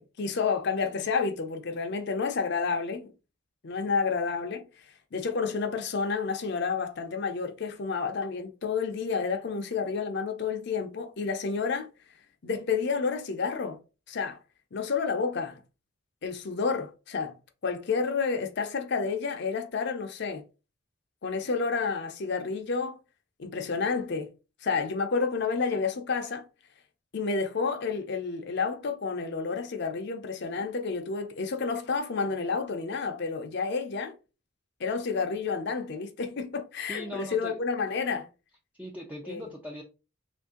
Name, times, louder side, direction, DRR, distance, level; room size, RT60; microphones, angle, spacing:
voice 1, 0.0-3.1 3.6-4.6 5.1-11.9 12.4-13.8 14.1-14.4 14.7-15.6 16.2-17.4 17.6-20.4 21.2-23.0 23.4-24.3 24.6-26.5 27.1-34.1 34.8-38.3 39.2-39.4, left 5 dB, 55° left, 0.5 m, -30 dB
voice 2, 36.9-37.6 38.7-39.8, left 1 dB, 5° right, 0.4 m, -40 dB
3.2 x 2.6 x 3.6 m
head